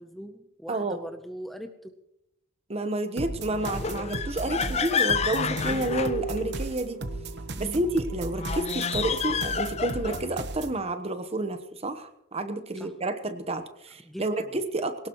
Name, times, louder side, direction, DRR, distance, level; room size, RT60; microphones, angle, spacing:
voice 1, 0.0-1.9 4.4-4.9 5.3-5.9 7.6-7.9 12.7-12.9 14.0-14.5, equal, ahead, 6 dB, 0.7 m, -41 dB
voice 2, 0.7-1.0 2.7-7.0 7.6-15.1, right 2 dB, 30° right, 9 dB, 1.1 m, -30 dB
sound 1, 3.2-10.8, right 2 dB, 55° right, 1.1 m, -36 dB
sound 2, 3.6-6.7 8.3-10.3, left 6 dB, 30° left, 0.5 m, -29 dB
sound 3, 5.8-7.4 7.7-7.8, right 1 dB, 50° left, 7.2 m, -36 dB
21.5 x 18.0 x 3.1 m, 0.82 s
head